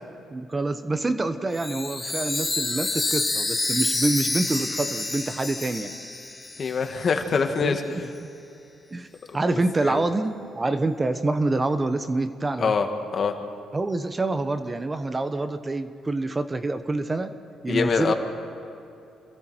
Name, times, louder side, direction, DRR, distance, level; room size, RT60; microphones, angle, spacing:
voice 1, 0.3-5.9 7.6-8.3 8.9-9.1 9.3-12.7 13.7-17.3 17.6-18.1, right 2 dB, 25° right, 10 dB, 1.0 m, -26 dB
Chime, 1.5-7.1, left 2 dB, 20° left, 1.8 m, -28 dB
voice 2, 6.6-7.8 9.8-10.0 12.6-12.9 13.1-13.3 17.7-18.1, left 5 dB, 50° left, 5 dB, 2.1 m, -24 dB
28.5 x 21.5 x 4.5 m, 2.8 s
cardioid pair, 90°, 0 cm